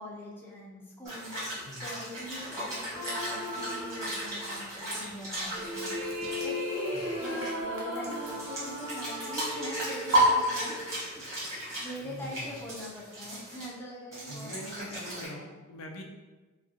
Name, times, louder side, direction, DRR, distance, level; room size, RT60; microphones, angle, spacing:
voice 1, 0.0-6.8 7.2-14.5 14.8-15.2, left 1 dB, 10° left, -5 dB, 0.6 m, -44 dB
sound 1, 1.0-7.5 8.0-13.7 14.1-15.3, equal, 15° right, 1.4 m, -38 dB
sound 2, 2.9-4.6 5.3-11.4, equal, 55° right, 1.1 m, -36 dB
Hot oil in pan, 5.7-9.5 10.1-10.2, right 1 dB, 70° right, 0.9 m, -34 dB
voice 2, 12.0-12.5 14.3-16.0, equal, 65° left, 2 dB, 0.5 m, -43 dB
4.9 x 2.3 x 2.8 m, 1.2 s
head